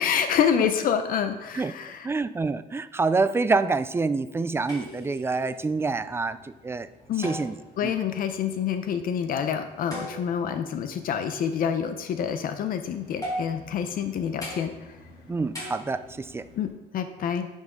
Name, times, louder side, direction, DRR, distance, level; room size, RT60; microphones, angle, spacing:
voice 1, 0.0-2.1 7.1-7.3 7.8-14.7 16.6-17.5, left 8 dB, 55° left, 9 dB, 0.6 m, -27 dB
voice 2, 2.0-6.9 7.2-7.6 7.8-8.0 15.3-16.4, right 4 dB, 15° right, 12 dB, 0.3 m, -27 dB
sound 1, 4.5-16.7, equal, 20° left, 2.9 m, -42 dB
9.0 x 5.4 x 3.7 m, 1.0 s
cardioid pair, 110°, 17 cm